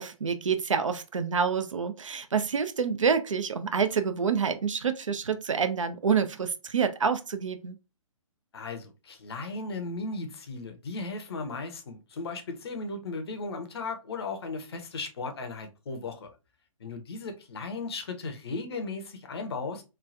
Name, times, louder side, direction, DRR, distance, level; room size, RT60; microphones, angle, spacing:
voice 1, 0.0-7.8, right 6 dB, 65° right, 0.5 m, -27 dB
voice 2, 8.5-16.3 16.8-19.8, left 3 dB, 45° left, 0.6 m, -36 dB
3.1 x 2.2 x 2.5 m
figure-of-eight pair, 130°, 18 cm